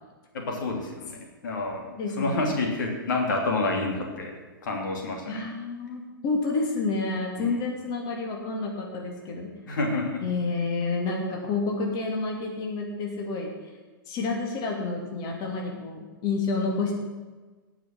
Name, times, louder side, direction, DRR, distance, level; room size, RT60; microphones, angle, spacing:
voice 1, 0.3-1.8 2.2-4.3 4.6-5.4 7.4-7.6 9.7-10.2, left 2 dB, 60° left, 1 dB, 2.8 m, -28 dB
voice 2, 2.0-2.5 5.3-9.5 10.2-13.5 14.1-17.0, left 3 dB, 35° left, 0 dB, 2.8 m, -29 dB
18.0 x 6.3 x 7.7 m, 1.3 s
figure-of-eight pair, 100°, 12 cm